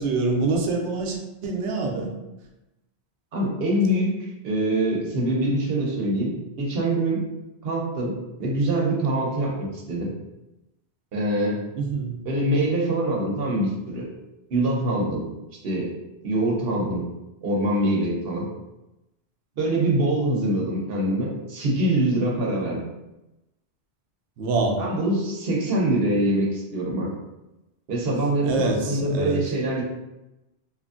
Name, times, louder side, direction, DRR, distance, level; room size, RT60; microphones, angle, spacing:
voice 1, 0.0-2.1 11.8-12.1 24.4-24.8 28.4-29.4, right 3 dB, 90° right, 1 dB, 0.9 m, -25 dB
voice 2, 3.3-7.2 7.6-8.1 8.4-10.1 11.1-11.6 12.2-14.1 14.5-15.3 15.6-15.9 16.2-17.0 17.4-18.5 19.6-22.8 24.8-27.1 27.9-29.8, right 1 dB, 65° right, -3 dB, 0.9 m, -24 dB
3.0 x 2.5 x 2.4 m, 0.98 s
omnidirectional pair, 1.1 m